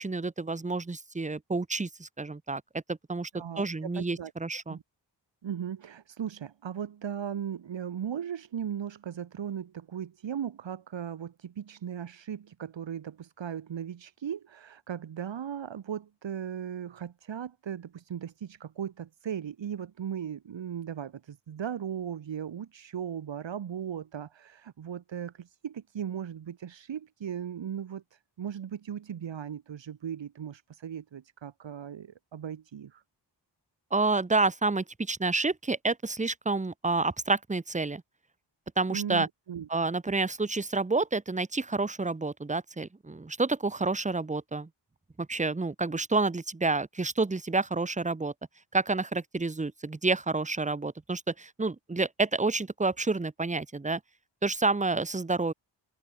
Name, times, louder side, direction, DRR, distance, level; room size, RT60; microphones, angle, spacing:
voice 1, 0.0-3.3 3.6-4.8 33.9-38.0 38.8-39.3 39.7-44.7 45.2-48.3 48.7-54.0 54.4-55.5, right 3 dB, 15° right, 1.0 m, -29 dB
voice 2, 3.3-3.7 3.9-4.3 4.7-4.8 5.4-33.0 38.9-39.7, right 8 dB, 80° right, 1.7 m, -37 dB
open air
wide cardioid pair, 130°, 44 cm